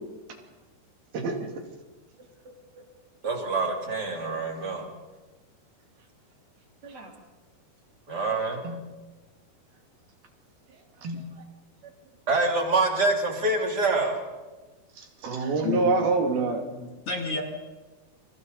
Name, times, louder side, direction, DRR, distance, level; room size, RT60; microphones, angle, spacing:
voice 1, 3.2-4.9 6.8-7.1 8.1-8.7 12.3-14.2, right 3 dB, 25° right, 1 dB, 3.3 m, -26 dB
voice 2, 11.0-11.4 15.0-16.6, right 3 dB, 75° right, 2 dB, 4.6 m, -26 dB
voice 3, 15.6-16.0 16.6-17.4, left 4 dB, 40° left, 1 dB, 3.1 m, -32 dB
28.5 x 28.0 x 4.1 m, 1.2 s
omnidirectional pair, 4.5 m